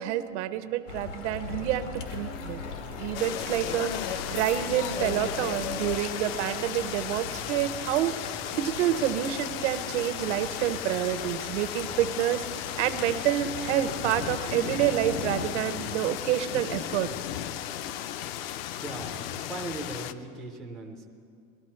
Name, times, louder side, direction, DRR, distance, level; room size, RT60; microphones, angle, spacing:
voice 1, 0.0-2.6 3.0-12.4 12.8-17.1, right 12 dB, 75° right, 11 dB, 0.8 m, -28 dB
sound 1, 0.9-15.5, left 4 dB, 90° left, 1.6 m, -41 dB
sound 2, 2.1-7.2, left 7 dB, 70° left, 1.1 m, -37 dB
sound 3, 3.1-20.1, left 11 dB, 55° left, 0.5 m, -35 dB
voice 2, 18.8-21.1, right 2 dB, ahead, -1 dB, 0.3 m, -39 dB
20.0 x 13.0 x 4.4 m, 2.4 s
supercardioid pair, 170°, 35 cm